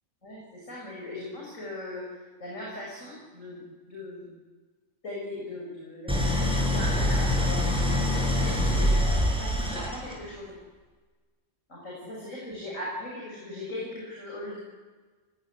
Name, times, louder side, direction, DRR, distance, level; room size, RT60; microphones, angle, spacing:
voice 1, 0.2-4.3 5.0-10.6 11.7-14.6, left 1 dB, 80° left, -4 dB, 7.3 m, -39 dB
Idling, 6.1-10.3, left 1 dB, 5° right, 6.5 m, -25 dB
28.0 x 18.5 x 9.8 m, 1.4 s
omnidirectional pair, 1.3 m